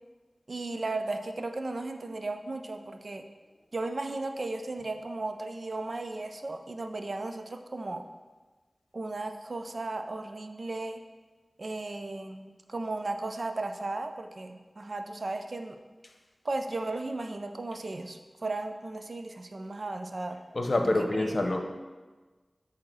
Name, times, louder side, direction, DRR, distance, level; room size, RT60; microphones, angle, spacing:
voice 1, 0.5-3.2 3.7-8.0 8.9-11.0 11.6-15.8 16.4-20.4 21.1-21.4, right 2 dB, 65° right, 6 dB, 0.5 m, -35 dB
voice 2, 20.5-21.6, left 2 dB, 60° left, 4 dB, 0.8 m, -26 dB
8.6 x 2.9 x 6.1 m, 1.3 s
cardioid pair, 40°, 0 cm